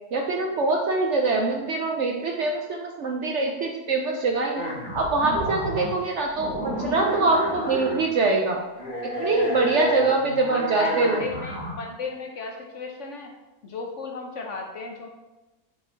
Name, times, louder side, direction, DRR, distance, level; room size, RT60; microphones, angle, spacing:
voice 1, 0.1-4.6 4.9-6.5 6.8-8.6 9.2-11.2, right 3 dB, 65° right, 1 dB, 0.7 m, -24 dB
sound 1, 4.5-6.0 6.3-8.1 8.8-11.7, equal, 80° left, 3.1 m, -31 dB
voice 2, 10.1-13.3 13.6-15.1, left 3 dB, 60° left, 2 dB, 0.9 m, -34 dB
6.9 x 4.3 x 3.8 m, 1.1 s
omnidirectional pair, 1.7 m